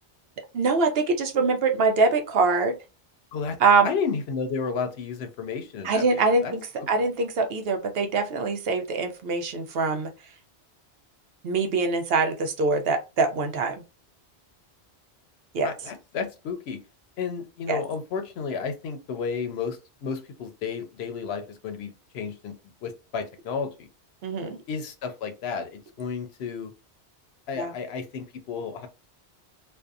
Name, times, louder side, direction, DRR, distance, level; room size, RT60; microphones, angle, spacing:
voice 1, 0.5-2.7 3.6-3.9 5.8-6.6 6.9-10.1 11.4-13.7 15.5-15.7 17.7-17.8 24.2-24.6 27.6-27.7, right 4 dB, 65° right, 5 dB, 0.7 m, -23 dB
voice 2, 3.8-6.5 6.8-6.9 15.6-16.8 17.2-22.5 22.8-23.9 24.7-26.7 27.5-28.9, left 5 dB, 70° left, 7 dB, 0.8 m, -32 dB
2.6 x 2.2 x 2.3 m, 0.28 s
omnidirectional pair, 1.1 m